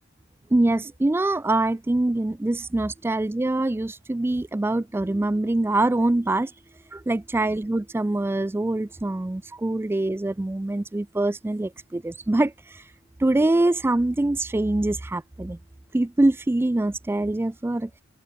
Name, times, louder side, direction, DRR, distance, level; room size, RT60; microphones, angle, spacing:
voice 1, 0.5-6.5 6.9-12.8 13.2-15.6 15.9-17.9, right 2 dB, 10° right, 0.3 m, -24 dB
head